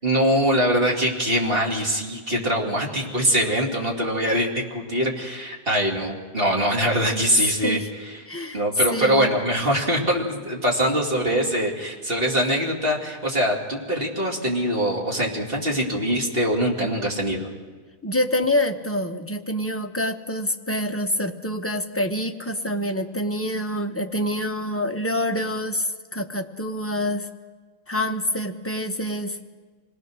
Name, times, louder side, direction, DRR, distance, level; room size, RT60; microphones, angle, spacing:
voice 1, 0.0-7.8 8.5-17.5, equal, 40° right, -1 dB, 3.0 m, -23 dB
voice 2, 7.1-7.9 8.3-8.6 8.9-9.3 18.0-27.3 27.9-29.4, left 1 dB, 10° left, 5 dB, 0.8 m, -26 dB
26.5 x 18.5 x 6.3 m, 1.5 s
omnidirectional pair, 1.5 m